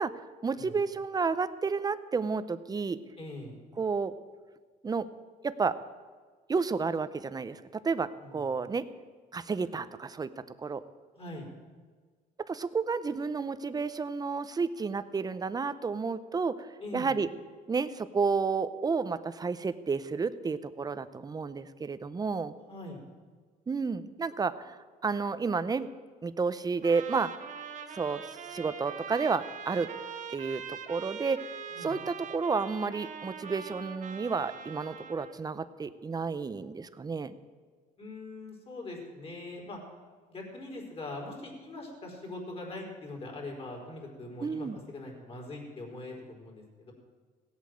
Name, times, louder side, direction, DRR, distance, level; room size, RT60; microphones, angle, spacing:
voice 1, 0.0-3.0 3.8-4.1 4.8-5.1 5.4-5.8 6.5-8.9 9.3-10.3 10.6-10.8 12.5-17.3 17.7-22.5 23.7-24.8 25.0-25.9 26.2-27.5 27.9-29.9 30.3-31.5 31.8-37.3 44.4-44.8, right 4 dB, 25° right, 13 dB, 0.7 m, -31 dB
voice 2, 3.2-3.5 8.2-8.4 11.1-11.5 16.8-17.1 22.7-23.0 31.7-31.9 38.0-39.8 40.3-46.9, left 2 dB, 35° left, 0 dB, 4.5 m, -42 dB
Trumpet, 26.8-35.4, right 7 dB, 50° right, 1.4 m, -43 dB
17.0 x 8.5 x 7.8 m, 1.5 s
cardioid pair, 110°, 17 cm